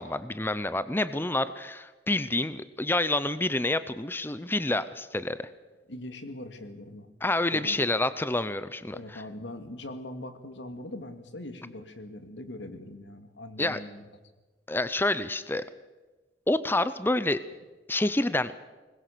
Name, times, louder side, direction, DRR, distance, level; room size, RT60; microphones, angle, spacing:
voice 1, 0.0-5.5 7.2-9.2 13.6-13.8 14.7-15.6 16.5-17.4 17.9-18.6, left 2 dB, 10° left, 13 dB, 0.7 m, -28 dB
voice 2, 5.9-7.1 7.5-7.8 8.9-14.0, left 1 dB, 80° left, 8 dB, 2.3 m, -41 dB
22.5 x 20.5 x 6.9 m, 1.2 s
head